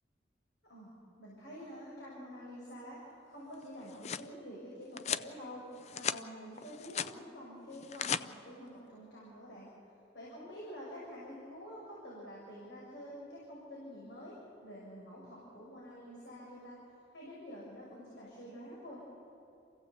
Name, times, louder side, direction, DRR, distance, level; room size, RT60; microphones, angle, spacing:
voice 1, 0.7-9.7 10.1-14.3 14.6-16.8 17.1-19.0, equal, 75° left, -6 dB, 6.1 m, -48 dB
sound 1, 3.6-4.3 5.0-5.3 5.7-6.2 6.6-7.1 7.7-8.2, left 8 dB, 35° left, 0.5 m, -36 dB
27.5 x 16.0 x 8.1 m, 2.8 s
head